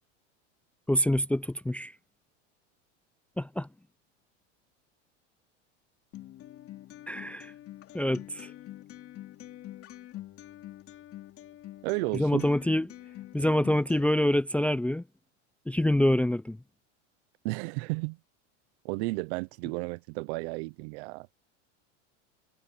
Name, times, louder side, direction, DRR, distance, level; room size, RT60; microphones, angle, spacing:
voice 1, 0.9-1.9 3.4-3.7 7.1-7.5 7.9-8.5 12.1-12.9 13.3-15.0 15.7-16.6, left 1 dB, 5° left, 0.5 m, -26 dB
Acoustic guitar, 6.1-14.1, left 14 dB, 40° left, 2.6 m, -46 dB
voice 2, 11.8-12.5 17.4-18.2 18.8-21.3, right 26 dB, 60° right, 0.9 m, -33 dB
supercardioid pair, 115°, 36 cm